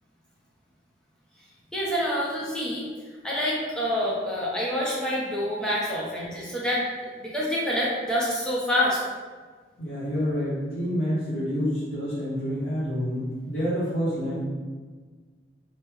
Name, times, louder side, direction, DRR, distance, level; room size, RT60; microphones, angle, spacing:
voice 1, 1.7-2.9 3.2-6.8 7.2-9.0, equal, 5° left, -6 dB, 0.6 m, -27 dB
voice 2, 9.8-14.4, equal, 55° left, -13 dB, 1.0 m, -28 dB
3.1 x 2.2 x 3.4 m, 1.4 s
head